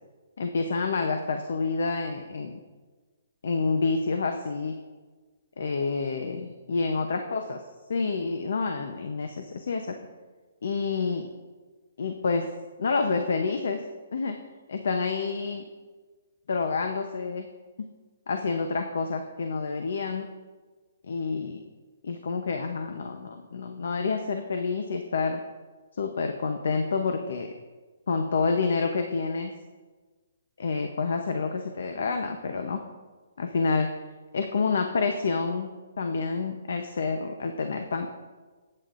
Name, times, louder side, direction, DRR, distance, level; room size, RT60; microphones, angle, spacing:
voice 1, 0.4-2.6 3.4-4.7 5.6-7.6 7.9-10.0 10.6-11.3 12.0-12.5 12.8-13.8 14.1-14.4 14.7-15.6 16.5-17.5 17.8-17.9 18.3-20.3 21.1-21.6 22.0-25.4 26.0-27.5 28.1-29.5 30.6-32.8 33.4-33.9 34.3-35.7 36.0-38.1, left 4 dB, 65° left, 5 dB, 0.8 m, -28 dB
19.5 x 8.7 x 2.6 m, 1.4 s
hypercardioid pair, 175°, 0 cm